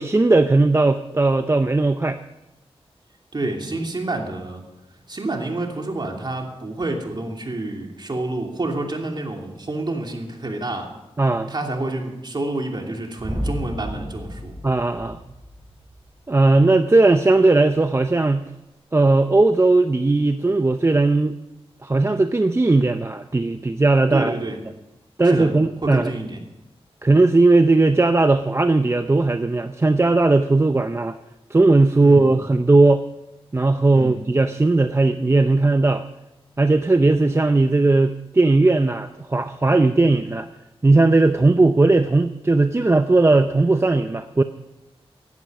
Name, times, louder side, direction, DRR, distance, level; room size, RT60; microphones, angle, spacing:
voice 1, 0.0-2.2 11.2-11.5 14.6-15.2 16.3-18.4 18.9-21.3 21.8-24.4 25.2-26.1 27.0-31.2 31.5-33.0 33.5-36.1 36.6-40.5 40.8-44.4, right 2 dB, 25° right, 9 dB, 0.6 m, -17 dB
voice 2, 3.3-4.6 5.1-10.9 11.5-14.6 24.1-24.6 25.2-25.5 25.8-26.4 32.0-32.3 33.9-34.2, right 2 dB, 45° right, 2 dB, 2.8 m, -28 dB
sound 1, 13.3-16.2, equal, 10° right, 5.9 m, -32 dB
16.5 x 11.0 x 5.4 m, 0.96 s
wide cardioid pair, 70°, 10 cm